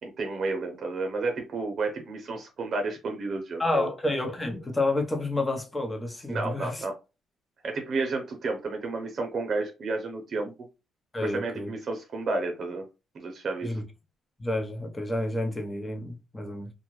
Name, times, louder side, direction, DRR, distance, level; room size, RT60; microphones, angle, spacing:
voice 1, 0.0-3.9 6.3-7.0 7.6-10.5 11.2-12.9 13.1-13.8, right 3 dB, 55° right, 0.7 m, -31 dB
voice 2, 3.6-6.8 11.1-11.7 13.6-13.8 14.4-16.7, left 2 dB, 15° left, 0.8 m, -29 dB
2.6 x 2.3 x 3.1 m
cardioid pair, 90°, 0 cm